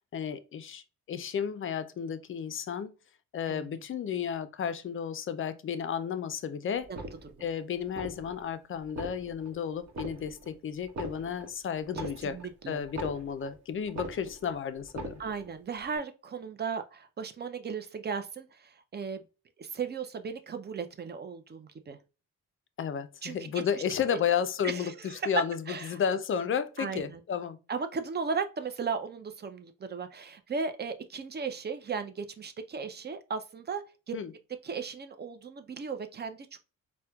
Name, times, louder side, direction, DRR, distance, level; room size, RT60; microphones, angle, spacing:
voice 1, 0.1-3.0 3.3-6.9 7.4-12.4 12.7-15.2 22.8-27.6 34.1-34.3, left 7 dB, 40° left, 0.4 m, -32 dB
voice 2, 3.5-3.8 6.9-7.4 11.9-12.8 15.2-19.2 19.6-22.0 23.2-23.5 24.1-24.2 24.6-25.3 25.7-26.0 26.8-27.2 27.7-34.2 34.6-36.6, right 5 dB, 30° right, 0.5 m, -36 dB
sound 1, 6.8-7.5 7.9-8.5 8.8-9.5 9.9-10.5 10.8-13.6 13.9-14.5 14.8-15.5 15.9-16.0, right 2 dB, 55° right, 0.9 m, -41 dB
4.2 x 2.2 x 2.3 m
cardioid pair, 80°, 33 cm